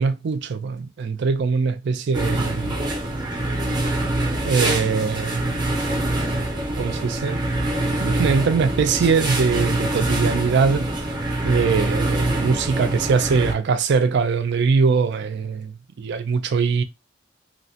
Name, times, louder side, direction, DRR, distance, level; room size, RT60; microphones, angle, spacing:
voice 1, 0.0-2.8 4.4-5.6 6.8-7.4 8.0-10.8 11.4-15.7 16.0-16.8, right 5 dB, 60° right, 0.4 m, -22 dB
sound 1, 2.1-13.5, right 1 dB, 20° right, 0.6 m, -24 dB
2.8 x 2.1 x 2.7 m
head